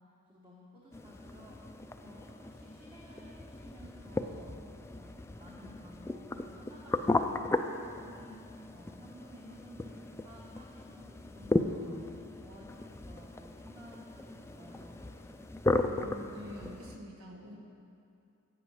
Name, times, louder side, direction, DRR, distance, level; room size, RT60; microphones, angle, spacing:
voice 1, 0.0-5.1 5.4-8.4 8.7-15.0, equal, 25° right, -5 dB, 1.1 m, -54 dB
sound 1, 0.9-17.0, left 2 dB, 10° left, 0.3 m, -36 dB
voice 2, 15.9-17.6, left 1 dB, 70° right, 0 dB, 1.3 m, -46 dB
11.0 x 8.6 x 4.8 m, 2.5 s
head